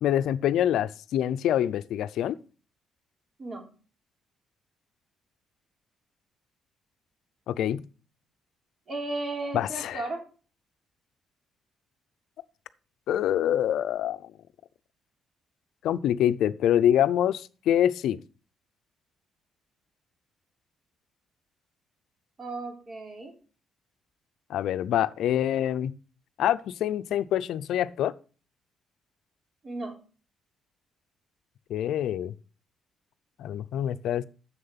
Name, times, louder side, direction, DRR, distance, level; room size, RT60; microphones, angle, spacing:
voice 1, 0.0-2.4 7.5-7.8 9.5-10.0 13.1-14.3 15.8-18.2 24.5-25.9 26.4-28.1 31.7-32.3 33.4-34.2, left 11 dB, 80° left, 0.5 m, -25 dB
voice 2, 8.9-10.3 22.4-23.4 29.6-29.9, right 2 dB, 40° right, 3.5 m, -35 dB
7.5 x 6.6 x 5.8 m
cardioid pair, 90°, 0 cm